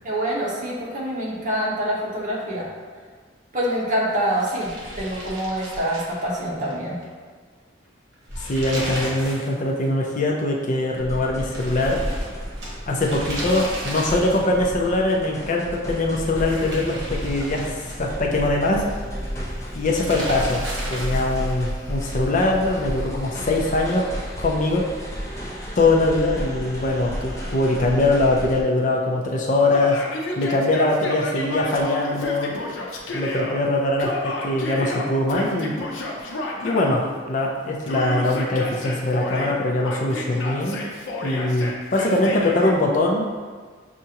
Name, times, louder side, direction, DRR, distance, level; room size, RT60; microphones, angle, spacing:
voice 1, 0.0-2.7 3.5-4.7 5.0-6.9, equal, 45° right, -5 dB, 1.0 m, -25 dB
sound 1, 4.3-6.7 7.0-7.1 8.1-9.5 9.8-9.9 11.5-14.6 16.2-18.2 19.8-21.5, right 1 dB, 65° right, 1.2 m, -33 dB
voice 2, 8.4-12.0 12.9-19.0 19.7-24.1 24.4-24.9 25.8-30.0 30.4-32.5 33.1-35.7 36.6-40.8 41.2-43.4, left 2 dB, 40° left, 0 dB, 0.5 m, -22 dB
sound 2, 11.0-28.6, equal, 15° left, 0.8 m, -32 dB
Yell, 29.7-33.5 34.0-37.0 37.9-39.5 39.8-42.7, left 2 dB, 85° left, 0.6 m, -31 dB
6.5 x 2.5 x 2.9 m, 1.5 s
head